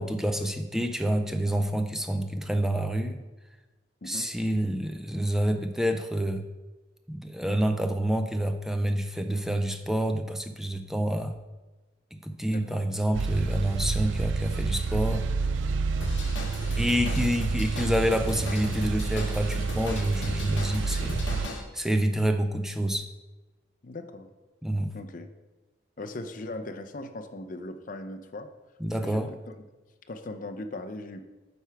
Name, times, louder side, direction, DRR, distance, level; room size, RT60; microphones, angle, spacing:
voice 1, 0.0-3.2 4.1-6.5 7.1-11.4 12.1-15.3 16.8-21.2 21.7-23.1 24.6-24.9 28.8-29.3, right 1 dB, ahead, 6 dB, 0.4 m, -28 dB
voice 2, 4.0-4.3 12.5-12.9 23.8-24.3 24.9-25.3 26.0-28.5 29.0-29.6 30.1-31.2, left 2 dB, 45° left, 6 dB, 0.5 m, -39 dB
sound 1, 13.1-21.5, right 4 dB, 85° right, 0.4 m, -29 dB
Drum kit / Drum, 16.0-21.6, left 2 dB, 75° left, 1.2 m, -37 dB
9.2 x 3.4 x 5.8 m, 1.2 s
head